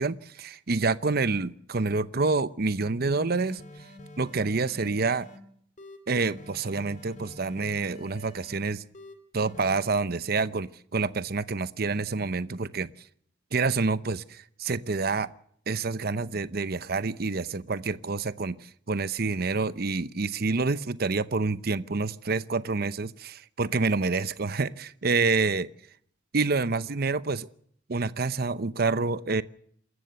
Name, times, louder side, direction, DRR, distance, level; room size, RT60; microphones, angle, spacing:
voice 1, 0.0-3.6 4.2-5.3 6.1-8.8 9.3-12.9 13.5-15.3 15.7-18.6 18.9-25.7 26.3-27.5 27.9-29.4, right 4 dB, 55° right, 14 dB, 0.8 m, -27 dB
sound 1, 3.3-5.4 5.8-8.6 8.9-9.9, left 1 dB, 40° left, 2.7 m, -47 dB
27.5 x 14.5 x 6.9 m, 0.66 s
head